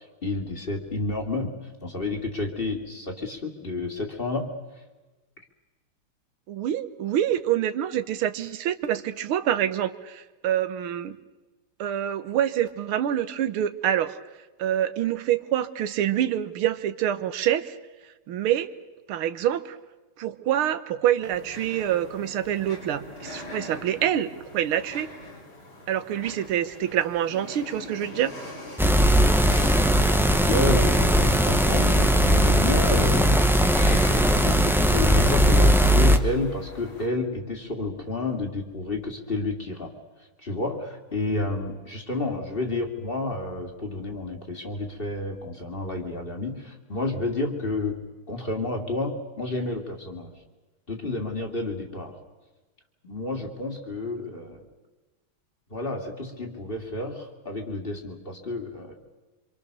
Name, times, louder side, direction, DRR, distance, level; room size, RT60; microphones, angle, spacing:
voice 1, 0.0-1.5 1.8-4.5 30.3-33.4 33.8-39.9 40.4-48.0 48.3-50.3 50.9-52.2 53.0-54.6 55.7-58.9, left 2 dB, 25° left, 3 dB, 2.6 m, -30 dB
voice 2, 6.5-11.2 11.8-14.2 14.6-17.8 18.3-18.7 19.1-19.8 20.2-25.1 25.9-28.3, right 11 dB, 90° right, 12 dB, 1.9 m, -26 dB
sound 1, 21.3-37.1, left 2 dB, 75° left, 4.7 m, -42 dB
sound 2, 28.8-36.2, equal, ahead, 0.6 m, -19 dB
26.0 x 24.5 x 6.8 m, 1.2 s
omnidirectional pair, 2.3 m